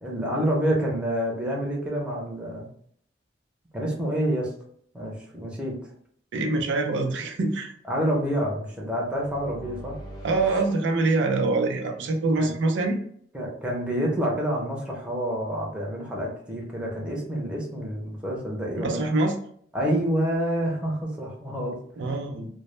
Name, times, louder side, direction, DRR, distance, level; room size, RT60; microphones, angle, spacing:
voice 1, 0.0-2.7 3.7-4.5 4.9-5.7 7.9-10.0 12.4-12.5 13.3-19.0 19.7-21.8, equal, 5° right, -3 dB, 0.6 m, -28 dB
voice 2, 6.3-7.7 10.2-13.0 18.8-19.3 22.0-22.5, right 3 dB, 90° right, 4 dB, 0.4 m, -24 dB
sound 1, 8.7-11.8, equal, 25° left, 0.8 m, -43 dB
2.0 x 2.0 x 3.0 m, 0.62 s
head